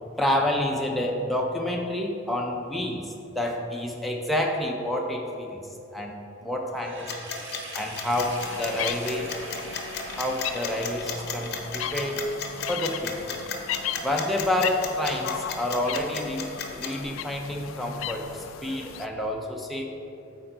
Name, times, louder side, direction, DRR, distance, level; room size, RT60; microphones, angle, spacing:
voice 1, 0.2-5.6 5.9-7.3 7.7-9.3 10.2-12.2 12.7-13.2 14.0-19.8, left 1 dB, ahead, -1 dB, 0.4 m, -29 dB
Sink (filling or washing), 6.8-11.7, right 3 dB, 60° right, 0.9 m, -42 dB
sound 1, 7.1-17.0, left 6 dB, 50° left, 0.7 m, -34 dB
sound 2, 8.1-19.0, left 9 dB, 75° left, 0.3 m, -37 dB
8.3 x 4.5 x 3.9 m, 2.9 s
head